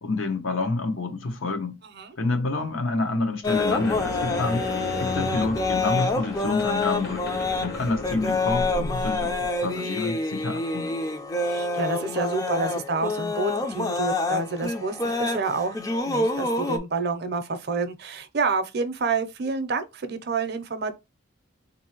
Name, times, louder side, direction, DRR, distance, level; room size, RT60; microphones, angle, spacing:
voice 1, 0.0-1.8 2.2-4.6 5.0-7.3 7.6-9.3 9.6-11.0, left 3 dB, 75° left, 0.8 m, -28 dB
sound 1, 3.4-16.8, left 3 dB, 15° left, 0.4 m, -27 dB
sound 2, 3.5-9.6, left 2 dB, 50° left, 0.9 m, -34 dB
voice 2, 11.4-15.8 16.0-20.9, right 4 dB, 50° right, 0.5 m, -28 dB
4.1 x 2.6 x 2.8 m
head